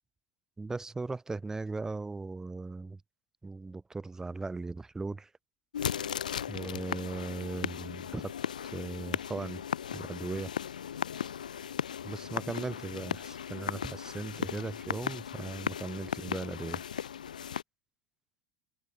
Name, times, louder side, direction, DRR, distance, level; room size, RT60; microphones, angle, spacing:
voice 1, 0.6-3.0 3.4-5.3 6.5-8.3 8.7-9.6 9.9-10.5 12.0-16.8, right 3 dB, 15° right, 1.8 m, -38 dB
sound 1, 5.7-17.6, left 8 dB, 80° left, 0.6 m, -37 dB
hypercardioid pair, 85°, 4 cm